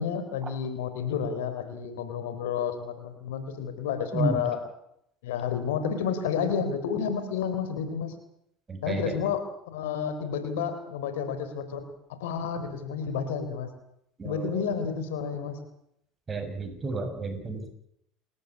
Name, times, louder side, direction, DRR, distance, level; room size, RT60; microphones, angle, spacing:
voice 1, 0.0-4.6 5.2-8.1 8.8-11.8 12.2-13.7 14.2-15.6, left 7 dB, 75° left, 9 dB, 3.9 m, -30 dB
voice 2, 8.7-9.1 14.2-14.6 16.3-17.7, right 3 dB, 25° right, 6 dB, 6.7 m, -31 dB
29.0 x 14.0 x 8.6 m, 0.75 s
hypercardioid pair, 75°, 0 cm